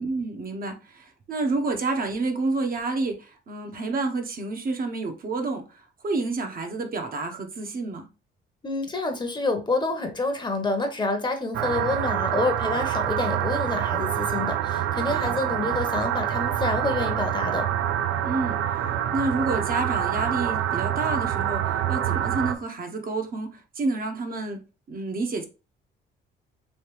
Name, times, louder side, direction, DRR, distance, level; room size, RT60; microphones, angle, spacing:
voice 1, 0.0-8.1 15.1-15.4 18.2-18.9 19.1-24.6 24.9-25.5, right 3 dB, 45° right, 0.7 m, -29 dB
voice 2, 8.6-17.7, left 2 dB, 25° left, 0.8 m, -28 dB
sound 1, 11.5-22.6, right 11 dB, 85° right, 0.4 m, -26 dB
3.2 x 2.8 x 3.1 m
cardioid pair, 90°, 20 cm